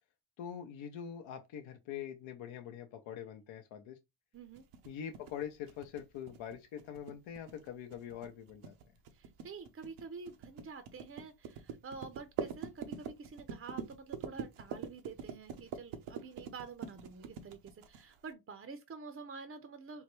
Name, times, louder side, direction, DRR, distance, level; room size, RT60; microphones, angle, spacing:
voice 1, 0.4-4.0 4.9-8.7, left 9 dB, 75° left, 0.7 m, -44 dB
voice 2, 4.3-4.6 9.1-20.0, right 4 dB, 30° right, 0.5 m, -48 dB
sound 1, 4.6-18.3, right 7 dB, 85° right, 0.7 m, -44 dB
3.8 x 2.2 x 3.0 m
supercardioid pair, 65°, 48 cm